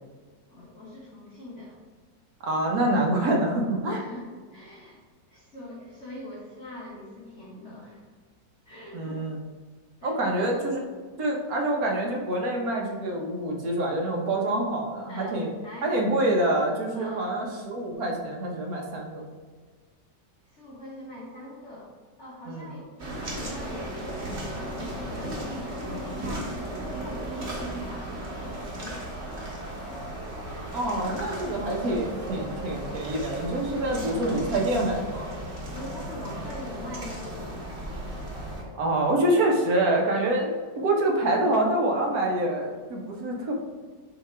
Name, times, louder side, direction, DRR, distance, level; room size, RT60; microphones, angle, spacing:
voice 1, 0.5-1.8 3.9-5.0 5.3-8.0 8.6-9.2 10.0-10.4 15.1-15.9 16.9-17.3 20.4-21.9 22.2-30.1 35.7-37.6, left 1 dB, 45° left, -7 dB, 1.5 m, -42 dB
voice 2, 2.4-4.0 8.9-9.4 10.0-10.8 11.2-15.5 15.8-19.2 22.5-22.6 30.7-35.3 38.8-43.5, right 1 dB, 60° right, 0 dB, 1.5 m, -26 dB
sound 1, 23.0-38.6, right 1 dB, 40° right, 1.7 m, -36 dB
6.9 x 3.5 x 4.6 m, 1.5 s
omnidirectional pair, 1.9 m